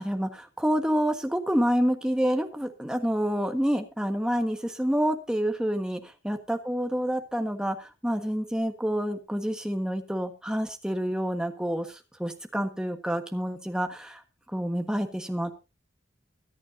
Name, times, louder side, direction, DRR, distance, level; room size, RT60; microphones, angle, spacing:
voice 1, 0.0-14.2 14.5-15.5, equal, 5° right, 5 dB, 1.4 m, -28 dB
23.5 x 8.6 x 2.7 m, 0.28 s
head